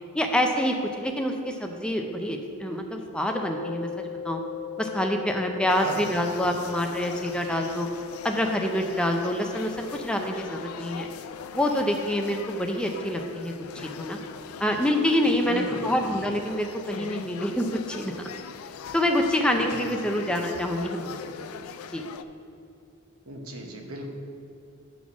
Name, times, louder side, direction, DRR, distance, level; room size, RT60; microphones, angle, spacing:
voice 1, 0.1-4.4 4.8-7.9 8.2-11.1 11.5-14.2 14.6-18.1 18.9-21.3 21.9-22.0, left 1 dB, 5° left, 3 dB, 0.5 m, -26 dB
sound 1, 3.3-16.3, left 8 dB, 40° left, 1.3 m, -42 dB
sound 2, 5.7-22.2, left 7 dB, 80° left, 0.3 m, -41 dB
voice 2, 5.8-6.2 15.4-16.1 19.6-20.2 23.3-24.1, right 2 dB, 85° right, 2 dB, 1.0 m, -37 dB
8.6 x 4.1 x 6.0 m, 2.5 s
head